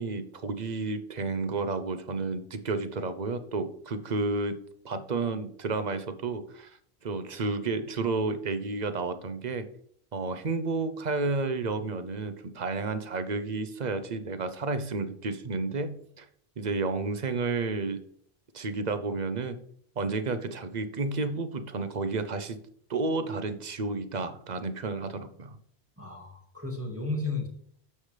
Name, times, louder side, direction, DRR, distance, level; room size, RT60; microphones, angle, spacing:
voice 1, 0.0-4.6 4.8-6.8 7.0-9.7 10.1-16.3 16.6-18.0 18.5-19.6 20.0-22.6 22.9-25.5, right 3 dB, 45° right, 10 dB, 0.8 m, -31 dB
voice 2, 26.0-27.5, left 3 dB, 15° right, 3 dB, 1.7 m, -33 dB
9.7 x 7.0 x 3.3 m, 0.63 s
omnidirectional pair, 1.1 m